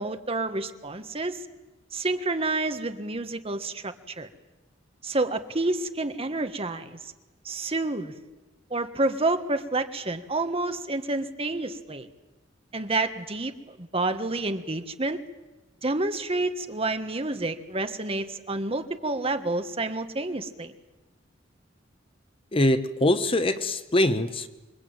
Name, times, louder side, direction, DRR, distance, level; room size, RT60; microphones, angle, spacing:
voice 1, 0.0-1.4 1.9-4.3 5.0-7.1 7.4-8.1 8.7-12.1 12.7-13.5 13.8-15.2 15.8-20.7, right 2 dB, 30° right, 1.5 m, -29 dB
voice 2, 22.5-24.5, left 1 dB, 30° left, 1.0 m, -23 dB
27.0 x 23.0 x 9.0 m
head